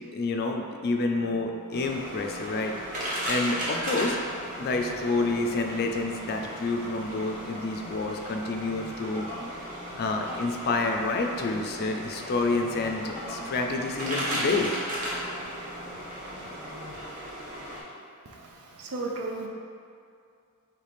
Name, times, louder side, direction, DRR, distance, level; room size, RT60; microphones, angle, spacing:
voice 1, 0.0-2.7 3.3-4.2 4.6-9.3 10.0-14.7, left 3 dB, 45° left, 3 dB, 0.3 m, -28 dB
sound 1, 0.9-17.0, left 1 dB, 10° left, 1.0 m, -46 dB
sound 2, 1.7-17.8, equal, 35° right, 0.9 m, -36 dB
voice 2, 18.3-19.5, right 3 dB, 80° right, 0 dB, 0.5 m, -35 dB
3.3 x 3.2 x 4.1 m, 2.4 s
head